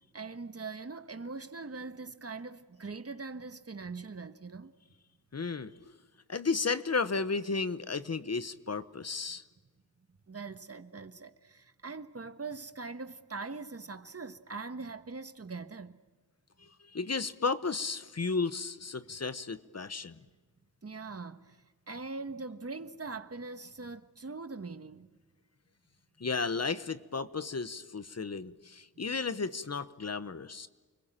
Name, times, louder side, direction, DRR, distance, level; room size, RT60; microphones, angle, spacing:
voice 1, 0.1-4.7 10.3-16.0 20.8-25.1, right 4 dB, 40° right, 1.3 m, -42 dB
voice 2, 5.3-5.9 6.3-9.4 16.6-20.2 26.2-30.7, left 4 dB, 45° left, 1.0 m, -33 dB
29.5 x 22.0 x 9.0 m
wide cardioid pair, 105°, 36 cm